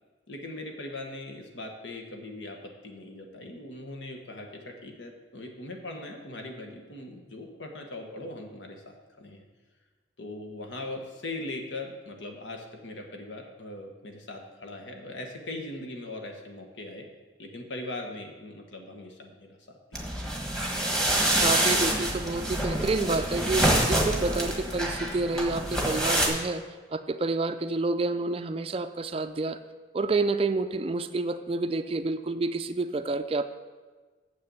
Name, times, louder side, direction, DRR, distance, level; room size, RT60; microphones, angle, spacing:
voice 1, 0.3-9.4 10.2-17.1 17.4-20.1, left 2 dB, 80° left, 2 dB, 1.3 m, -40 dB
sound 1, 19.9-26.3, right 1 dB, 5° left, 1.2 m, -26 dB
voice 2, 21.4-26.6 26.9-29.6 29.9-33.4, right 3 dB, 30° right, 10 dB, 0.4 m, -29 dB
7.5 x 6.6 x 7.0 m, 1.4 s
head